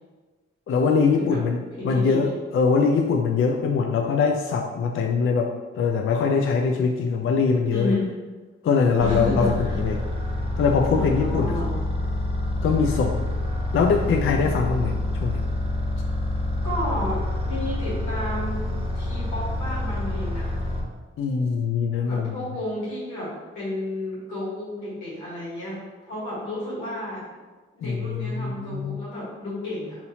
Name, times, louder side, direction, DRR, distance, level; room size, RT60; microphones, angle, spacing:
voice 1, 0.7-8.0 8.6-10.0 10.6-11.6 12.6-13.2 13.7-14.9 15.2-15.4 21.2-22.4 27.8-29.0, left 5 dB, 45° left, 2 dB, 0.4 m, -22 dB
voice 2, 1.8-2.3 7.7-8.1 9.0-9.8 11.0-11.8 16.6-18.7 18.9-20.5 22.0-27.2 27.7-30.1, left 1 dB, 85° left, -8 dB, 1.4 m, -32 dB
sound 1, 9.0-20.8, left 1 dB, 20° right, 0.8 m, -27 dB
4.0 x 2.8 x 2.7 m, 1.3 s
hypercardioid pair, 40°, 29 cm